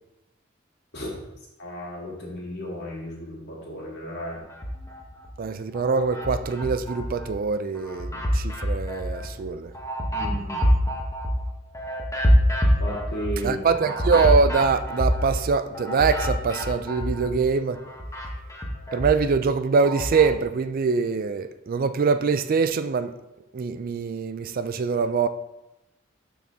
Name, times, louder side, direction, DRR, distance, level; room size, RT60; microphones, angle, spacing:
voice 1, 1.6-4.4 10.1-10.7 12.8-13.8, equal, 60° left, 2.6 m, -34 dB
sound 1, 4.5-5.3 5.7-7.3 7.7-17.5 17.7-20.3, equal, 15° left, 1.0 m, -26 dB
voice 2, 5.4-9.7 13.4-17.8 18.9-23.1 23.5-25.3, right 5 dB, 45° right, 0.4 m, -24 dB
12.0 x 4.1 x 3.6 m
head